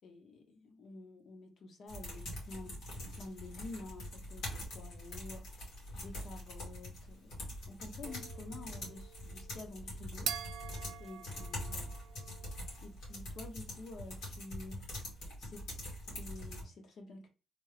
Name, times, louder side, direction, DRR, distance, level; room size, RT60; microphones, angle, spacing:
voice 1, 0.0-5.6 5.9-7.3 7.7-10.3 11.0-11.9 12.8-14.8 15.4-15.7 16.1-17.3, left 2 dB, 60° left, 1.0 m, -49 dB
sound 1, 1.9-16.6, left 1 dB, 85° left, 1.9 m, -44 dB
sound 2, 8.0-12.9, right 9 dB, 75° right, 0.4 m, -45 dB
3.4 x 2.3 x 3.3 m
cardioid pair, 90°, 0 cm